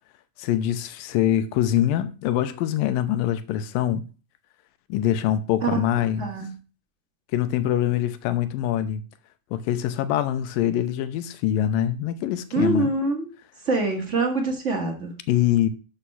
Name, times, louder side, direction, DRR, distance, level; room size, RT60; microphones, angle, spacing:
voice 1, 0.4-4.0 4.9-6.3 7.3-9.0 9.5-12.9 15.3-15.7, left 11 dB, 85° left, 2.4 m, -24 dB
voice 2, 6.2-6.5 12.5-13.3 13.6-15.1, right 3 dB, 30° right, 1.3 m, -24 dB
11.5 x 5.7 x 5.5 m
omnidirectional pair, 4.1 m